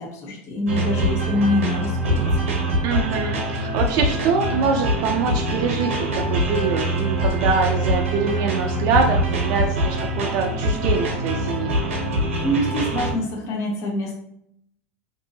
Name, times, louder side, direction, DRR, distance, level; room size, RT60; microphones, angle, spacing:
voice 1, 0.0-2.5 12.4-14.2, left 1 dB, 45° left, -1 dB, 0.8 m, -25 dB
sound 1, 0.7-13.1, right 1 dB, 90° right, 0.8 m, -23 dB
voice 2, 2.8-11.7, right 5 dB, 55° right, 2 dB, 0.4 m, -24 dB
2.6 x 2.6 x 2.7 m, 0.71 s
hypercardioid pair, 105°, 7 cm